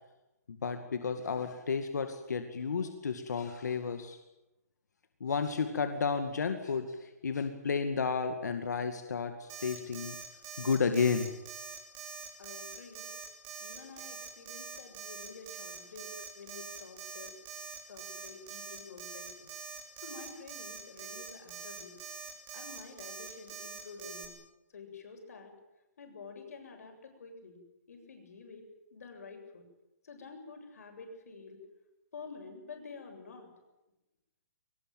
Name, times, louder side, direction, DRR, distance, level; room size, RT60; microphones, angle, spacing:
voice 1, 0.5-4.2 5.2-10.2 10.6-11.3, left 5 dB, 85° left, 7 dB, 2.3 m, -32 dB
Alarm, 9.5-24.3, right 6 dB, 20° right, 3.4 m, -44 dB
voice 2, 12.4-13.1 13.6-17.3 17.9-19.5 20.0-22.0 22.5-24.4 24.7-25.5 26.0-27.6 27.9-29.7 30.0-31.6 32.1-33.5, left 4 dB, 65° left, 4 dB, 7.6 m, -49 dB
22.5 x 20.0 x 9.3 m, 0.95 s
hypercardioid pair, 170°, 9 cm